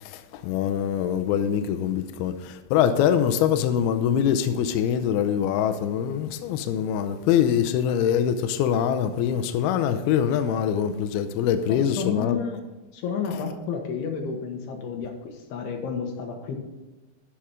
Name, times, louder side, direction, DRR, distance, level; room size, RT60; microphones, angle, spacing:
voice 1, 0.0-12.4, left 9 dB, 85° left, 2.2 m, -24 dB
voice 2, 11.7-12.7 12.9-16.6, left 6 dB, 70° left, 3.1 m, -31 dB
12.0 x 5.8 x 5.1 m
omnidirectional pair, 5.3 m